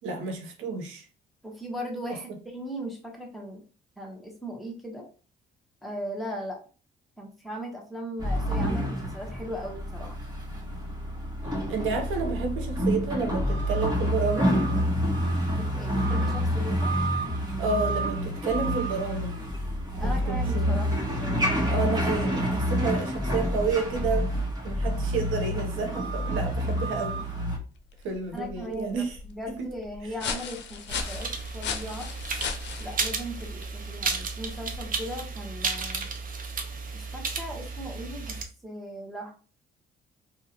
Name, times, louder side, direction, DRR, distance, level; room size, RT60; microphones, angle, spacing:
voice 1, 0.0-1.1 11.7-14.5 17.6-19.3 20.0-20.8 21.7-27.2 28.0-29.2 29.6-29.7 30.0-30.1, right 4 dB, 85° right, 0.8 m, -30 dB
voice 2, 1.4-3.6 4.0-5.1 5.8-6.6 7.2-10.2 15.5-16.9 20.0-20.9 21.2-21.8 28.3-31.3 31.5-32.1 32.8-36.1 36.9-39.3, equal, ahead, 1.1 m, -38 dB
sound 1, 8.2-27.6, equal, 20° right, 1.4 m, -28 dB
sound 2, 27.8-35.2, left 6 dB, 65° left, 0.6 m, -38 dB
sound 3, 30.9-38.4, right 4 dB, 45° right, 0.7 m, -33 dB
3.5 x 2.3 x 2.9 m
cardioid pair, 90°, 20 cm